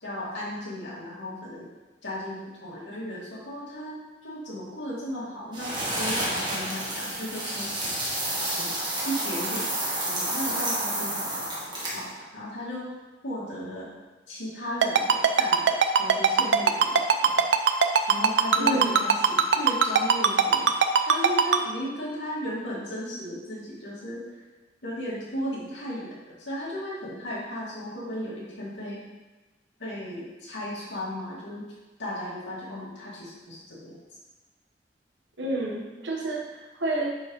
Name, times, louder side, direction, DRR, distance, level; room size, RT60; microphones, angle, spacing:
voice 1, 0.0-1.7 2.0-7.9 8.5-11.4 11.9-12.9 13.2-13.9 14.3-17.3 18.1-20.7 21.1-24.2 24.8-29.0 29.8-31.7 32.0-34.0, equal, 90° left, -6 dB, 2.3 m, -35 dB
sound 1, 5.5-12.1, right 1 dB, 25° right, 1.7 m, -30 dB
Ringtone, 14.8-21.6, right 6 dB, 75° right, 0.5 m, -19 dB
voice 2, 18.6-19.0 35.4-37.2, right 1 dB, 90° right, -1 dB, 1.4 m, -29 dB
8.9 x 4.7 x 3.2 m, 1.2 s
head